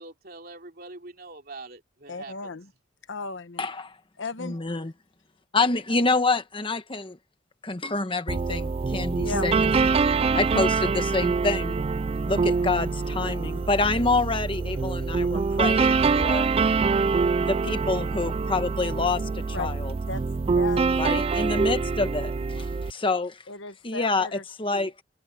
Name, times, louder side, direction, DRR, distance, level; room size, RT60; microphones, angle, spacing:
voice 1, 0.0-2.6, right 3 dB, 50° right, 3.1 m, -44 dB
voice 2, 2.1-2.7 3.1-3.7 4.2-4.6 9.2-9.5 19.5-19.7 20.1-20.2 20.5-20.8 23.5-24.9, left 3 dB, 70° left, 1.1 m, -35 dB
voice 3, 3.6-3.9 4.4-4.9 5.5-7.2 7.6-9.9 10.3-11.8 12.3-16.5 17.4-19.9 21.0-23.4 23.8-25.0, left 3 dB, 25° left, 1.2 m, -27 dB
sound 1, 8.3-22.9, right 4 dB, 30° right, 0.3 m, -25 dB
sound 2, 11.9-20.2, right 2 dB, 75° right, 3.3 m, -57 dB
head